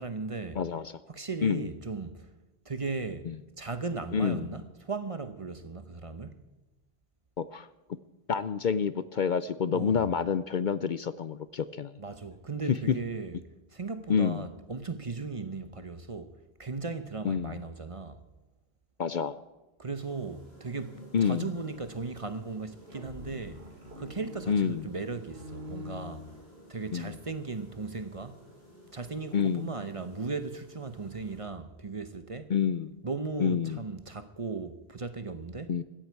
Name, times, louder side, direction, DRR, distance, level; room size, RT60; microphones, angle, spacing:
voice 1, 0.0-0.6 1.1-2.2 2.7-3.3 3.6-6.4 9.7-10.1 12.0-13.4 13.7-16.3 16.6-18.2 19.8-23.6 24.0-26.2 26.7-28.5 28.9-32.5 33.0-35.7, right 4 dB, 35° right, 0.9 m, -37 dB
voice 2, 0.5-0.9 1.4-1.7 3.3-3.4 4.1-4.5 7.4-7.7 8.3-11.9 12.9-13.0 14.1-14.5 17.2-17.6 19.0-19.4 21.1-21.5 24.5-24.8 26.9-27.2 29.3-29.7 32.5-32.9 33.4-33.8 35.7-35.8, left 7 dB, 55° left, 0.7 m, -28 dB
sound 1, 20.0-31.4, equal, 80° left, 7.0 m, -54 dB
sound 2, 22.7-26.9, left 1 dB, 80° right, 2.7 m, -45 dB
16.5 x 14.0 x 4.6 m
omnidirectional pair, 1.1 m